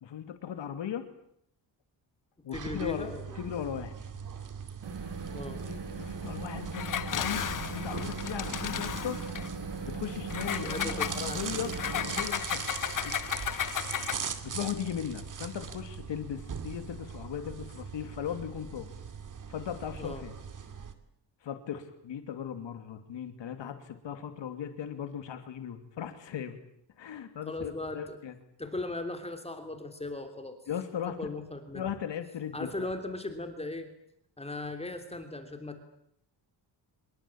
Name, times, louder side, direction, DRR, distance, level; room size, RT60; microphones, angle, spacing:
voice 1, 0.0-1.0 2.4-3.1 3.4-3.9 5.7-9.2 9.8-12.6 12.9-13.1 14.4-18.9 19.5-20.3 21.4-26.6 27.0-28.3 30.7-31.3 31.7-32.9, left 9 dB, 75° left, 8 dB, 2.8 m, -37 dB
voice 2, 2.5-3.5 5.3-5.6 10.5-11.6 20.0-20.2 27.5-28.2 28.6-30.6 31.0-31.9 32.5-33.9 34.4-35.8, left 2 dB, 15° left, 6 dB, 3.0 m, -38 dB
sound 1, 2.5-20.9, right 6 dB, 45° right, 2.5 m, -41 dB
sound 2, 4.8-12.2, right 4 dB, 70° right, 7.5 m, -39 dB
Engine, 6.7-9.5 10.3-14.4, left 9 dB, 45° left, 1.0 m, -34 dB
25.5 x 22.5 x 8.8 m, 0.73 s
wide cardioid pair, 145°, 45 cm